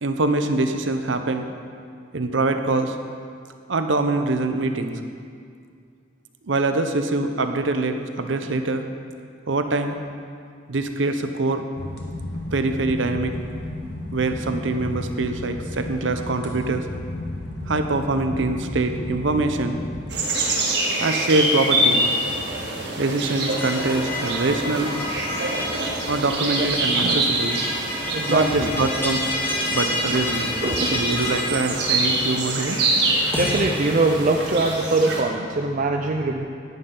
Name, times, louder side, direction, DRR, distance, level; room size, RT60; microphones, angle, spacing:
voice 1, 0.0-1.5 2.1-3.0 3.7-4.9 6.5-8.9 9.5-10.0 10.7-11.7 12.5-13.3 14.1-16.8 17.7-19.8 21.0-22.0 23.0-25.0 26.1-27.6 28.3-29.4 29.7-30.5 30.9-32.8, right 2 dB, 75° right, 7 dB, 0.7 m, -24 dB
sound 1, 11.7-20.1, left 1 dB, 60° left, 1.3 m, -33 dB
sound 2, 20.1-35.2, right 2 dB, 60° right, 1.7 m, -25 dB
sound 3, 23.5-33.6, left 1 dB, 15° left, 2.0 m, -30 dB
voice 2, 28.1-28.7 30.6-30.9 33.4-36.5, right 2 dB, 40° right, 2 dB, 0.5 m, -22 dB
11.0 x 10.5 x 3.9 m, 2.3 s
head